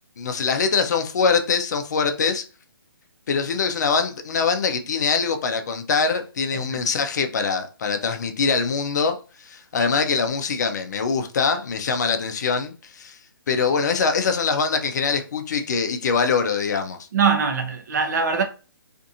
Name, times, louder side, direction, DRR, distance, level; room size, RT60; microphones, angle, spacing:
voice 1, 0.2-2.4 3.3-9.2 9.4-13.2 13.5-17.0, left 5 dB, 50° left, 0.5 m, -23 dB
voice 2, 17.1-18.4, right 5 dB, 50° right, 0.6 m, -22 dB
2.5 x 2.4 x 2.7 m
hypercardioid pair, 155°, 12 cm